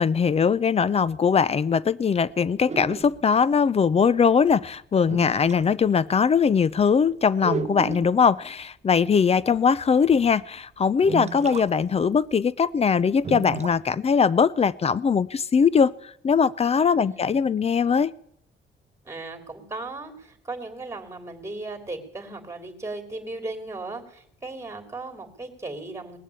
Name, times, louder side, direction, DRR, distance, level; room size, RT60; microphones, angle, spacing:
voice 1, 0.0-18.1, left 6 dB, 30° left, 20 dB, 0.6 m, -21 dB
sound 1, 2.7-3.3 4.5-4.6 5.0-5.6 6.2-6.4 6.6-6.8 7.4-8.2 9.6-9.7 10.3-10.4 11.0-11.7 12.0-12.1 12.3-12.4 13.2-13.8, right 6 dB, 35° right, 0.8 m, -33 dB
voice 2, 16.9-17.3 19.0-26.2, right 2 dB, 15° right, 6 dB, 2.9 m, -36 dB
19.5 x 7.3 x 8.3 m, 0.72 s
cardioid pair, 90°, 20 cm